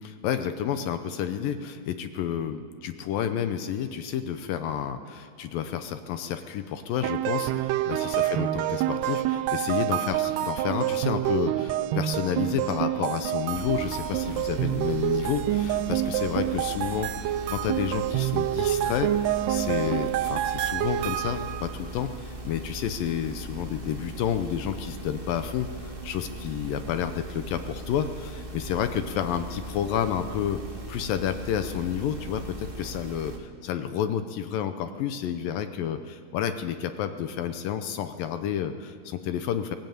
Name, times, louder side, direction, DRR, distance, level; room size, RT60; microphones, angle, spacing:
voice 1, 0.0-30.6 30.9-39.8, left 9 dB, 75° left, 9 dB, 2.3 m, -30 dB
sound 1, 7.0-21.7, right 13 dB, 90° right, 2.8 m, -27 dB
sound 2, 13.5-33.4, right 1 dB, 35° right, 0.8 m, -39 dB
22.5 x 18.0 x 9.2 m, 2.1 s
omnidirectional pair, 4.6 m